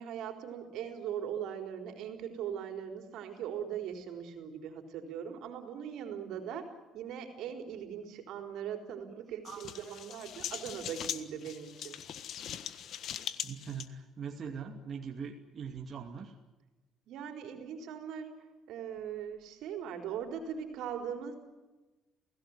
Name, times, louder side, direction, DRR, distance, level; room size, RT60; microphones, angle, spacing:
voice 1, 0.0-12.0 17.1-21.4, right 8 dB, 80° right, 6 dB, 4.1 m, -40 dB
voice 2, 9.2-9.9 13.4-16.3, right 6 dB, 40° right, 2 dB, 2.5 m, -42 dB
sound 1, 9.5-13.9, left 9 dB, 65° left, 1.6 m, -41 dB
28.5 x 17.5 x 9.7 m, 1.1 s
cardioid pair, 110°, 0 cm